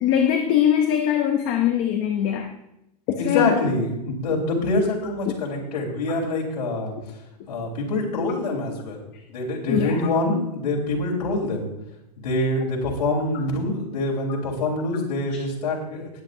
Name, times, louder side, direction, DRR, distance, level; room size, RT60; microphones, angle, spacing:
voice 1, 0.0-2.5 3.1-3.5 5.3-5.4 9.7-10.0, left 9 dB, 15° left, 5 dB, 0.4 m, -21 dB
voice 2, 3.2-6.9 7.5-9.0 9.3-11.7 12.2-16.1, left 2 dB, 85° left, -4 dB, 3.4 m, -25 dB
19.0 x 8.6 x 2.6 m, 0.87 s
supercardioid pair, 180°, 21 cm